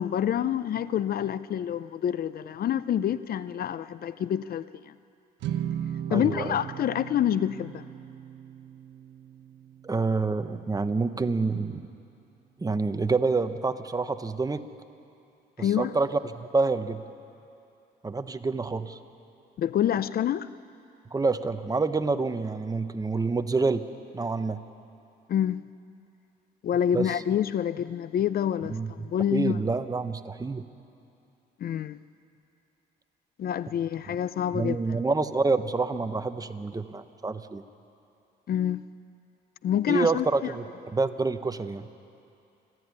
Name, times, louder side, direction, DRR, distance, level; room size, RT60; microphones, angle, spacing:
voice 1, 0.0-4.9 6.1-7.8 15.6-16.0 19.6-20.5 25.3-25.6 26.6-29.6 31.6-32.0 33.4-34.8 38.5-38.8 39.6-40.5, left 10 dB, 55° left, 0.5 m, -27 dB
sound 1, 5.4-11.8, right 10 dB, 85° right, 1.1 m, -38 dB
voice 2, 6.1-6.6 9.8-11.9 12.6-14.6 15.6-17.0 18.0-19.0 21.1-23.8 24.1-24.6 26.9-27.1 28.7-30.6 34.5-37.6 39.9-40.6 40.9-41.9, right 3 dB, 20° right, 0.9 m, -27 dB
28.0 x 12.5 x 9.8 m
cardioid pair, 95°, 18 cm